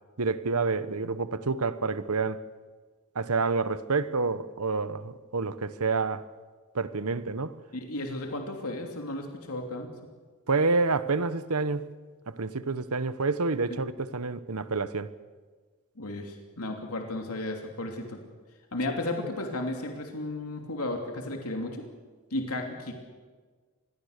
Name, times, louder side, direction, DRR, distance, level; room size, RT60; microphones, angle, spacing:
voice 1, 0.2-2.4 3.1-6.2 6.7-7.6 10.5-12.0 12.3-15.1, right 4 dB, 85° right, 1.2 m, -28 dB
voice 2, 7.7-9.9 13.7-13.8 16.0-18.2 18.7-21.8 22.3-22.9, left 2 dB, 80° left, 3.0 m, -34 dB
26.0 x 21.0 x 6.7 m
head